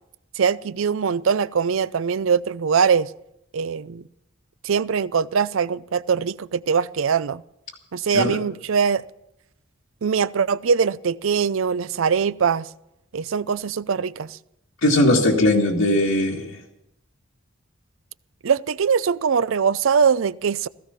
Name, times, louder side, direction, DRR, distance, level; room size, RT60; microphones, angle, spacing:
voice 1, 0.4-3.1 3.5-4.0 4.6-7.4 7.9-9.0 10.0-12.7 13.1-14.4 18.4-20.7, right 6 dB, 70° right, 0.5 m, -22 dB
voice 2, 14.8-16.6, left 1 dB, 80° left, 2.1 m, -19 dB
16.0 x 15.0 x 5.8 m
head